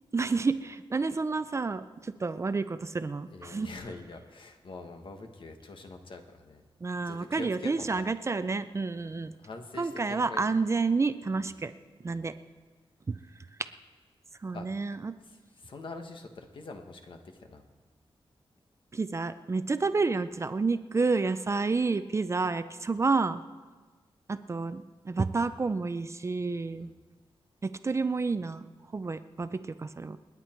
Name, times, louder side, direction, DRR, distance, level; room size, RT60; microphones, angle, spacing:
voice 1, 0.1-3.7 6.8-9.3 9.8-11.7 12.0-12.3 13.1-13.2 14.4-15.2 18.9-23.4 24.3-26.9 27.6-28.6 28.9-30.2, right 4 dB, 30° right, 11 dB, 0.5 m, -29 dB
voice 2, 3.3-6.6 7.0-8.1 9.0-9.1 9.4-10.4 11.4-11.5 12.1-12.2 14.5-14.7 15.2-17.6 26.8-26.9, left 3 dB, 60° left, 5 dB, 1.5 m, -44 dB
28.5 x 9.8 x 4.5 m, 1.3 s
wide cardioid pair, 170°, 10 cm